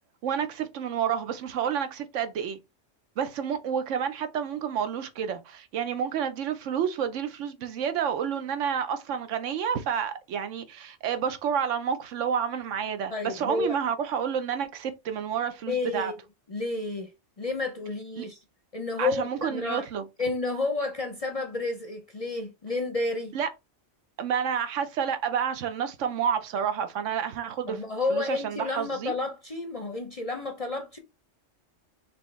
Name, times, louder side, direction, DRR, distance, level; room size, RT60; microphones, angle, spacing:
voice 1, 0.2-2.6 3.2-16.1 18.2-18.3 19.0-20.1 23.3-23.5 24.2-27.8 28.1-29.1, right 8 dB, 75° right, 1.0 m, -29 dB
voice 2, 13.1-13.8 15.7-16.2 16.5-17.1 17.4-18.4 18.7-19.9 20.2-23.4 27.7-31.0, left 3 dB, 40° left, 0.5 m, -30 dB
4.3 x 3.0 x 3.2 m
omnidirectional pair, 1.3 m